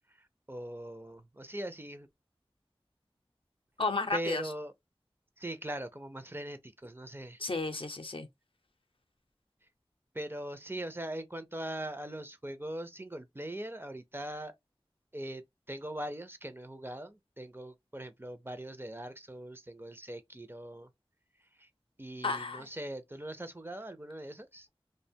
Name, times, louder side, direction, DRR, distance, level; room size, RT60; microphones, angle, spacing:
voice 1, 0.1-2.1 4.1-4.7 5.4-7.4 10.1-14.5 15.1-20.9 21.5-21.7 22.0-24.7, right 1 dB, 25° right, 0.4 m, -41 dB
voice 2, 3.8-4.4 7.4-8.3 22.2-22.7, left 3 dB, 65° left, 0.5 m, -33 dB
2.4 x 2.1 x 2.6 m
wide cardioid pair, 40°, 10 cm